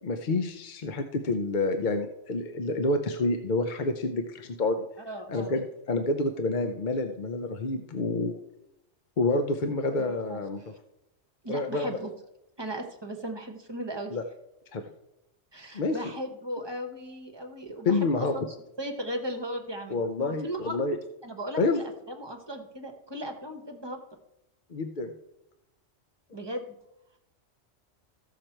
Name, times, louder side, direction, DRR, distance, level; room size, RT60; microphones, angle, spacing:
voice 1, 0.0-4.8 5.3-8.4 9.2-10.7 11.5-11.9 14.1-14.2 14.7-14.8 15.7-16.0 17.8-18.3 19.9-21.0 21.6-21.8 24.7-25.1, left 3 dB, 50° left, 6 dB, 0.7 m, -28 dB
voice 2, 5.1-5.6 9.9-10.4 11.4-12.1 12.6-14.2 15.5-18.4 18.8-20.8 21.2-24.0 26.3-26.6, right 1 dB, 25° right, 4 dB, 1.0 m, -37 dB
14.0 x 6.6 x 4.4 m, 0.87 s
omnidirectional pair, 1.2 m